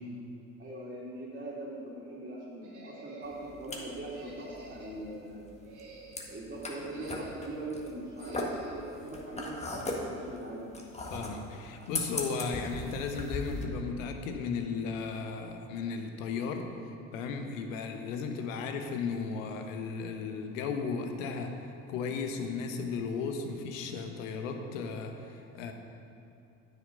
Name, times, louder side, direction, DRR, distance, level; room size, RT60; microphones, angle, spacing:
voice 1, 0.6-5.5 6.3-10.7, right 1 dB, 25° right, -9 dB, 2.6 m, -41 dB
sound 1, 2.6-3.5 4.1-5.1 5.5-6.4 6.9-7.6 8.2-8.9, right 3 dB, 50° right, 2.2 m, -51 dB
sound 2, 3.2-13.6, left 2 dB, 15° left, 1.6 m, -39 dB
voice 2, 11.1-16.7 17.1-25.7, left 5 dB, 75° left, 5 dB, 1.1 m, -35 dB
9.2 x 7.5 x 5.3 m, 2.6 s
hypercardioid pair, 65°, 39 cm